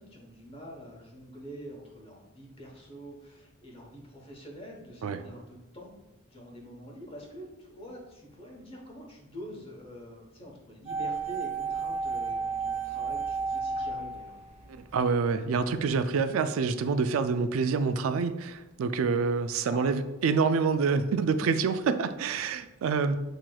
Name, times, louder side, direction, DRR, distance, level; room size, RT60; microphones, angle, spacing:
voice 1, 0.0-5.9 6.3-14.3 19.7-19.9, equal, 25° left, -1 dB, 1.0 m, -45 dB
sound 1, 10.9-15.0 15.2-15.3, right 4 dB, 30° right, 0.6 m, -32 dB
voice 2, 14.7-23.2, right 5 dB, 80° right, 10 dB, 0.3 m, -27 dB
7.6 x 2.9 x 2.3 m, 1.0 s
head